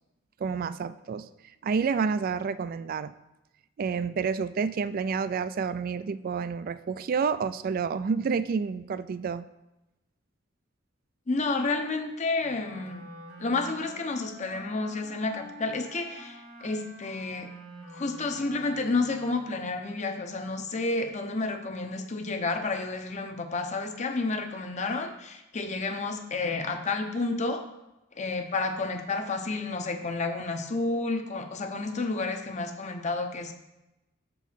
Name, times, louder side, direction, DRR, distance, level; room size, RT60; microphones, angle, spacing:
voice 1, 0.4-1.3 1.6-3.1 3.8-9.5, right 5 dB, 45° right, 15 dB, 0.3 m, -29 dB
voice 2, 11.3-13.0 13.4-17.5 17.9-27.6 28.2-33.5, left 3 dB, 35° left, 6 dB, 0.7 m, -30 dB
Wind instrument woodwind instrument, 12.4-19.8, right 1 dB, 80° right, 1.8 m, -47 dB
7.0 x 4.6 x 5.6 m, 0.96 s
head